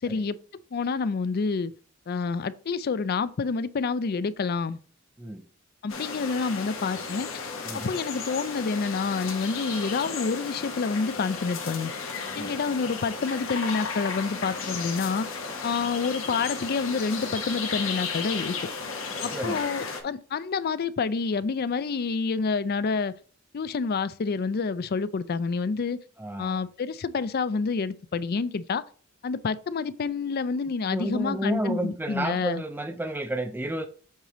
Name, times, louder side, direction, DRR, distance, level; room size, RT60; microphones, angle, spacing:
voice 1, 0.0-0.4 0.7-1.7 2.1-4.8 5.8-7.3 7.8-11.9 12.3-15.3 15.6-18.6 19.2-23.1 23.5-26.0 26.4-28.8 29.2-32.6, left 4 dB, 50° left, 0.4 m, -28 dB
sound 1, 5.9-20.0, left 5 dB, 75° left, 1.4 m, -34 dB
voice 2, 7.7-8.0 12.4-12.6 19.2-19.6 26.2-26.6 30.9-33.8, right 1 dB, 10° right, 0.5 m, -31 dB
8.0 x 3.7 x 3.4 m
head